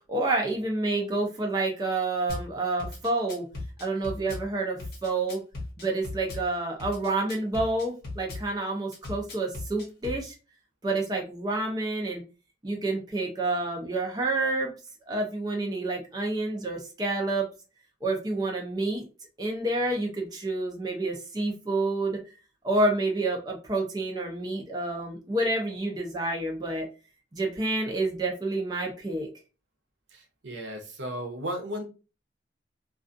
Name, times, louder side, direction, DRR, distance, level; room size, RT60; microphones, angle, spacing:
voice 1, 0.1-3.4 3.8-5.4 5.8-10.3 10.8-12.2 12.6-14.7 15.1-17.5 18.0-19.0 19.4-22.2 22.6-26.9 27.3-29.3, right 2 dB, 20° right, 0 dB, 0.5 m, -28 dB
Drum kit / Bass drum, 2.3-2.5 2.8-4.4 4.8-6.4 6.8-8.4 8.9-10.2, left 2 dB, 55° left, 0.9 m, -37 dB
voice 2, 30.1-31.8, equal, 80° right, 4 dB, 0.6 m, -35 dB
2.3 x 2.3 x 2.5 m, 0.32 s
head